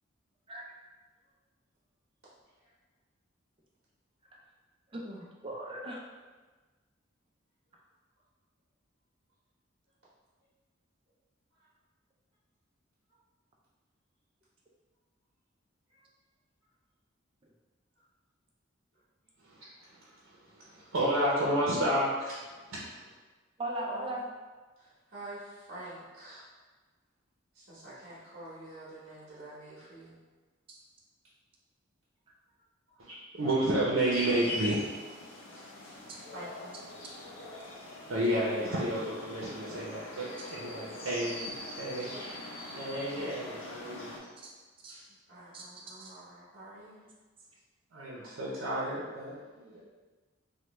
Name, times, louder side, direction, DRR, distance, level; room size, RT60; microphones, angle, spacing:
voice 1, 4.9-6.1 23.6-24.2 30.7-30.8 44.4-44.5 44.8-44.9 45.5-45.6 46.0-46.1, right 1 dB, 25° right, -2 dB, 0.4 m, -38 dB
voice 2, 20.6-22.4 22.7-22.8 33.0-34.8 38.1-42.1 42.8-44.2 44.9-45.0 47.9-49.8, right 1 dB, 90° right, -6 dB, 0.6 m, -31 dB
voice 3, 24.8-26.5 27.5-30.2 32.9-33.1 36.3-36.8 42.1-42.2 43.2-43.5 45.3-47.0, right 1 dB, 50° right, -10 dB, 0.9 m, -48 dB
sound 1, 34.1-44.2, left 2 dB, 80° left, 0.6 m, -42 dB
3.3 x 2.2 x 3.0 m, 1.3 s
head